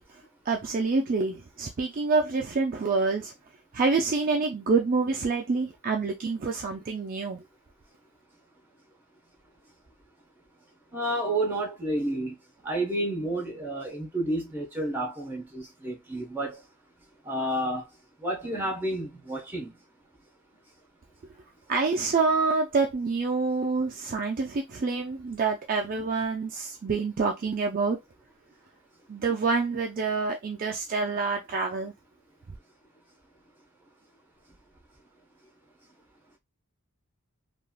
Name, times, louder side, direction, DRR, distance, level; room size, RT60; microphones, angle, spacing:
voice 1, 0.5-3.3 3.7-7.4 21.7-28.0 29.1-31.9, right 4 dB, 40° right, 0.4 m, -27 dB
voice 2, 10.9-12.3 12.6-16.6 17.2-17.8 18.2-19.7, right 1 dB, 10° right, 1.0 m, -30 dB
3.3 x 2.4 x 2.2 m
head